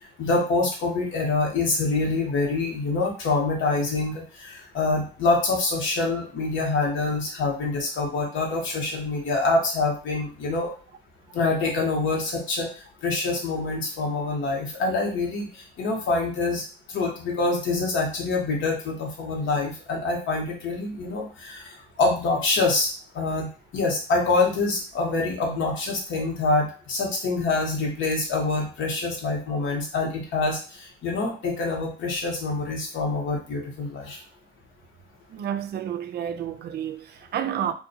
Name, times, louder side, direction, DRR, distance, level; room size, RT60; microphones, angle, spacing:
voice 1, 0.2-10.7 11.3-16.6 16.9-34.2, left 3 dB, 80° left, 1.0 m, -26 dB
voice 2, 35.3-37.7, right 9 dB, 55° right, 0.4 m, -30 dB
2.7 x 2.2 x 2.7 m
cardioid pair, 90°, 20 cm